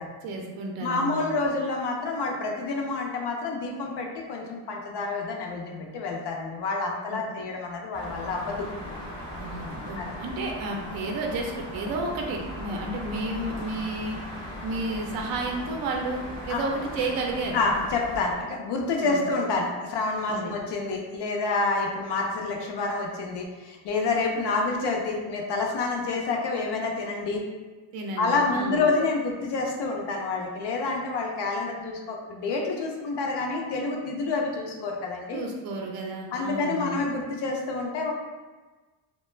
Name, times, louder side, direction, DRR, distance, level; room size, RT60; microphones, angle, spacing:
voice 1, 0.2-1.3 7.1-7.2 9.4-14.2 14.6-16.2 16.5-17.6 18.4-18.5 19.0-19.2 20.3-20.5 27.9-28.8 35.3-37.0, right 2 dB, 50° right, 1 dB, 0.5 m, -32 dB
voice 2, 0.8-8.6 10.0-10.1 16.5-16.6 17.5-27.4 28.2-35.4 36.3-38.1, left 3 dB, 55° left, 1 dB, 0.6 m, -28 dB
sound 1, 7.9-18.3, left 1 dB, 10° left, 0.6 m, -38 dB
2.3 x 2.1 x 3.1 m, 1.3 s
cardioid pair, 140°, 49 cm